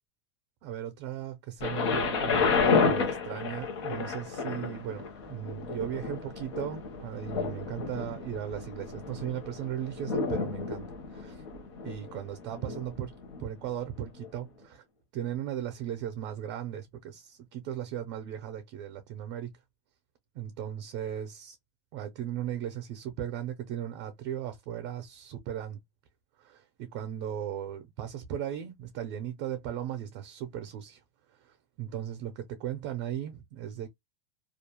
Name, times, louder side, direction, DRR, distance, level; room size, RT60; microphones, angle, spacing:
voice 1, 0.6-11.5 11.8-13.1 13.4-14.8 15.1-19.5 20.3-21.6 21.9-25.8 26.4-31.0 31.3-33.9, right 10 dB, 40° right, 0.5 m, -37 dB
Thunder, 1.6-13.5 14.2-14.3, left 4 dB, 65° left, 0.9 m, -31 dB
2.4 x 2.1 x 2.9 m
supercardioid pair, 175°, 15 cm